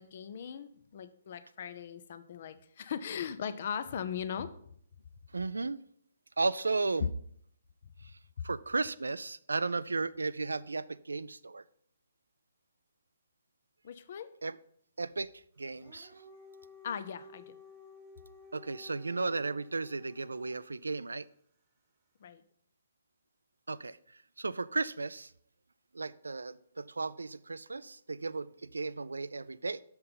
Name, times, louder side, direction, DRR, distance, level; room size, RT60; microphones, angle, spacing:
voice 1, 0.0-4.5 7.8-7.9 13.8-14.3 16.8-17.6 22.2-22.4, left 8 dB, 45° left, 12 dB, 0.6 m, -39 dB
voice 2, 5.3-5.8 6.4-7.1 8.0-8.1 8.4-11.6 14.4-14.6 15.0-16.2 18.5-21.3 23.7-25.3 25.9-29.8, right 3 dB, 75° right, 18 dB, 0.3 m, -35 dB
Dog, 15.6-20.8, left 1 dB, 20° right, 1.0 m, -54 dB
6.7 x 5.7 x 5.2 m, 0.66 s
figure-of-eight pair, 130°, 0 cm